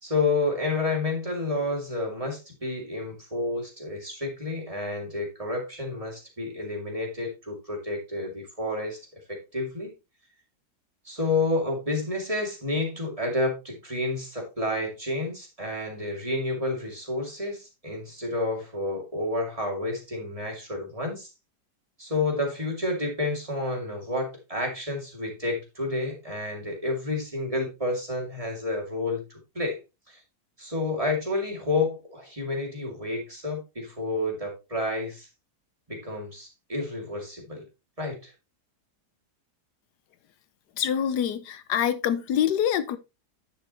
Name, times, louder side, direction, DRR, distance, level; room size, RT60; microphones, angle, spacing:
voice 1, 0.0-9.0 9.3-9.9 11.0-21.3 22.0-29.8 30.1-30.2 30.6-35.3 35.9-37.6 38.0-38.3, left 2 dB, 20° right, 2.5 m, -30 dB
voice 2, 40.7-43.0, left 9 dB, 80° left, 1.3 m, -25 dB
10.0 x 6.5 x 2.9 m
omnidirectional pair, 1.7 m